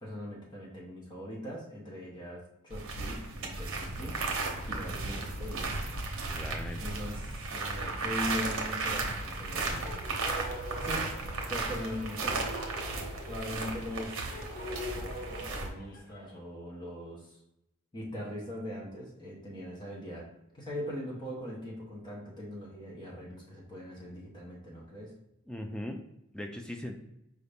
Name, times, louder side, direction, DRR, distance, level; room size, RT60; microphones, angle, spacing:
voice 1, 0.0-4.2 4.7-5.7 6.8-9.9 10.7-11.1 11.5-12.4 13.3-14.2 15.3-17.4 17.9-20.3 20.5-25.1, left 1 dB, 20° left, -4 dB, 0.9 m, -40 dB
sound 1, 2.7-15.7, right 3 dB, 65° right, 0.8 m, -35 dB
voice 2, 6.3-6.8 25.5-26.0 26.3-27.0, left 1 dB, 5° left, 4 dB, 0.3 m, -39 dB
sound 2, 9.5-16.4, equal, 50° left, 0.9 m, -43 dB
4.8 x 2.6 x 3.4 m, 0.86 s
head